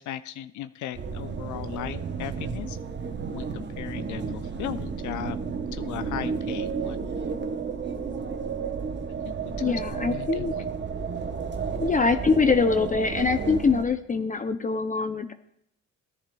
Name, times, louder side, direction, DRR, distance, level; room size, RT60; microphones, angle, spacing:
voice 1, 0.0-2.8 3.3-5.4 5.7-7.1 9.2-10.7, left 12 dB, 75° left, 12 dB, 0.5 m, -37 dB
sound 1, 0.9-13.8, right 5 dB, 35° right, 0.9 m, -32 dB
voice 2, 9.6-10.5 11.8-15.3, left 4 dB, 25° left, 8 dB, 0.6 m, -24 dB
17.0 x 10.5 x 2.3 m, 0.71 s
cardioid pair, 90°, 30 cm